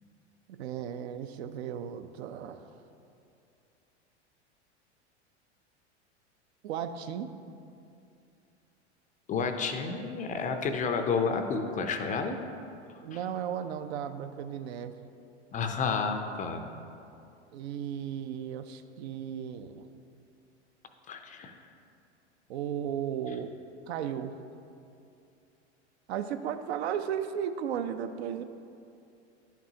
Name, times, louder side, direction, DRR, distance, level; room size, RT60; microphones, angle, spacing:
voice 1, 0.6-2.7 6.6-7.3 13.0-14.9 17.5-19.8 22.5-23.5 23.9-24.4 26.1-28.4, right 9 dB, 65° right, 9 dB, 0.5 m, -35 dB
voice 2, 9.3-12.4 13.1-13.2 15.5-16.7 21.1-21.5, left 5 dB, 25° left, 6 dB, 0.4 m, -30 dB
10.0 x 6.0 x 2.7 m, 2.6 s
hypercardioid pair, 90°, 35 cm